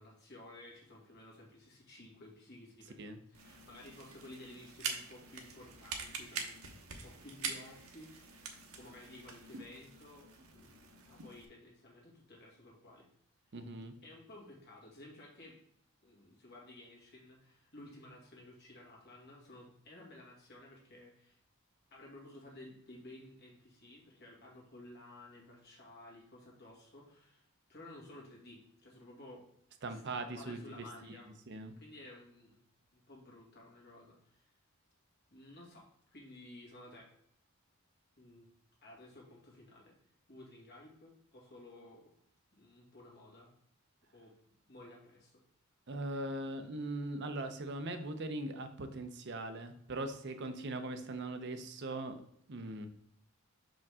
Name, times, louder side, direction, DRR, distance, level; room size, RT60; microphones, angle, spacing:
voice 1, 0.0-6.6 7.0-13.1 13.5-13.6 14.0-15.6 16.0-21.4 21.9-29.4 29.9-31.3 31.8-32.6 32.9-34.5 35.3-37.1 38.2-38.5 38.8-39.9 40.3-42.1 42.6-43.5 44.1-45.4, left 1 dB, 50° left, -3 dB, 2.1 m, -54 dB
sound 1, 3.3-11.4, right 5 dB, 80° right, 1.0 m, -45 dB
voice 2, 13.5-14.0 29.8-31.2 31.5-31.7 45.9-52.2 52.5-52.9, right 2 dB, 55° right, 8 dB, 0.6 m, -40 dB
5.9 x 5.1 x 3.6 m, 0.71 s
head